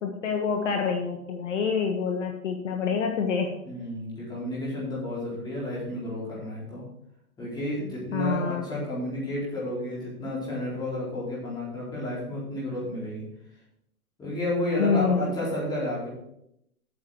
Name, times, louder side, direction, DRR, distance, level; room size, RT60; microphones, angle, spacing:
voice 1, 0.0-3.6 8.1-8.7 14.8-15.4, left 5 dB, 55° left, 3 dB, 1.5 m, -27 dB
voice 2, 3.6-6.8 7.4-13.2 14.2-16.1, left 1 dB, 10° left, -7 dB, 4.0 m, -31 dB
8.6 x 7.2 x 6.1 m, 0.78 s
hypercardioid pair, 155°, 45 cm